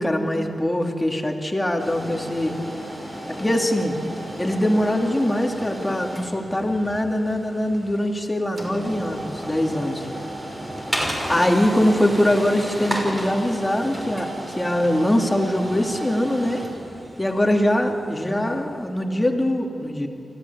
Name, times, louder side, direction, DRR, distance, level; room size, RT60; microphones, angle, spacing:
voice 1, 0.0-2.6 3.3-4.0 4.4-10.1 11.0-16.6 17.2-20.1, left 1 dB, 15° left, 3 dB, 2.6 m, -22 dB
sound 1, 1.8-18.6, right 1 dB, 20° right, 5.7 m, -33 dB
25.0 x 15.5 x 8.5 m, 2.8 s
cardioid pair, 75°, 0 cm